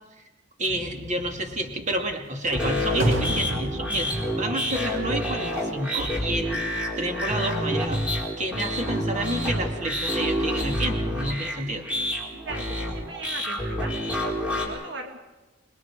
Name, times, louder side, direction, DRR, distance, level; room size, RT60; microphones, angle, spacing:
voice 1, 0.6-6.6 7.0-11.9, right 1 dB, 40° right, 3 dB, 2.5 m, -30 dB
sound 1, 0.7-5.7, right 1 dB, 90° right, 2.0 m, -32 dB
sound 2, 2.5-14.7, equal, 5° right, 4.4 m, -28 dB
voice 2, 12.3-15.2, right 3 dB, 65° right, 4 dB, 1.6 m, -39 dB
27.5 x 21.0 x 4.9 m, 1.1 s
head